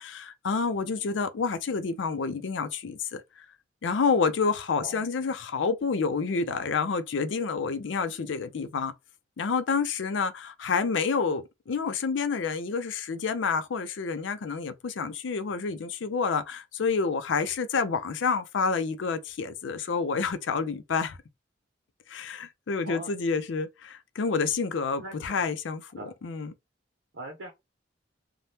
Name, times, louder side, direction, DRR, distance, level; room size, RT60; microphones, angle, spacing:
voice 1, 0.0-3.5 3.8-8.9 9.4-21.2 22.1-26.5, left 5 dB, 80° left, 0.5 m, -29 dB
voice 2, 22.8-23.2 25.0-25.5 26.0-26.1 27.1-27.5, right 2 dB, 75° right, 0.7 m, -41 dB
2.7 x 2.2 x 3.3 m
head